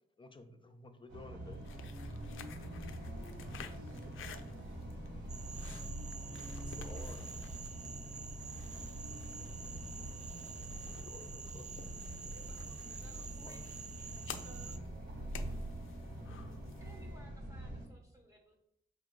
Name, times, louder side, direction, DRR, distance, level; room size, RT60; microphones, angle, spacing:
voice 1, 0.2-1.6 6.8-7.4 10.8-12.0 13.4-13.7, left 2 dB, 25° left, 7 dB, 0.6 m, -53 dB
sound 1, 1.1-17.9, right 1 dB, 55° right, 1.7 m, -44 dB
sound 2, 1.5-17.1, left 8 dB, 80° left, 0.4 m, -54 dB
voice 2, 3.5-4.9 8.7-9.5 12.2-13.7 14.4-14.9, right 4 dB, 85° right, 5 dB, 0.7 m, -60 dB
Cricket / Frog, 5.3-14.8, right 6 dB, 35° right, 0.4 m, -49 dB
voice 3, 13.4-14.2 16.1-16.3 16.8-18.5, equal, 15° right, 1 dB, 1.0 m, -61 dB
5.0 x 2.7 x 3.8 m, 0.77 s
cardioid pair, 65°, 21 cm